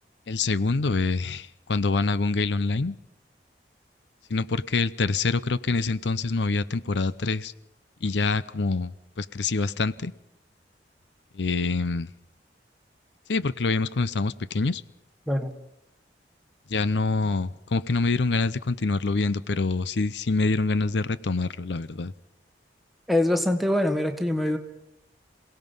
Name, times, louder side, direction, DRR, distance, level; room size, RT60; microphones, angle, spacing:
voice 1, 0.3-3.0 4.3-7.5 8.0-10.1 11.3-12.1 13.3-14.8 16.7-22.1, left 3 dB, 90° left, 0.7 m, -26 dB
voice 2, 23.1-24.6, left 1 dB, ahead, 1.5 m, -24 dB
27.5 x 17.5 x 5.5 m
head